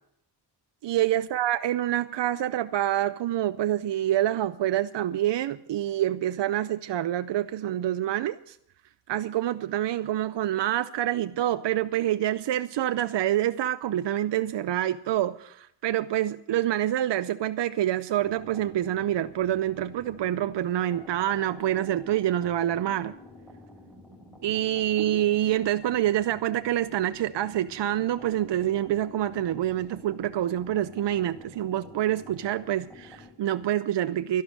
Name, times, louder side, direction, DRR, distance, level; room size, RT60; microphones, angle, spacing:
voice 1, 0.8-8.6 9.1-23.1 24.4-34.4, right 12 dB, 80° right, 0.6 m, -27 dB
sound 1, 18.1-33.3, left 2 dB, ahead, 5.2 m, -49 dB
12.5 x 11.5 x 6.4 m
wide cardioid pair, 90°, 42 cm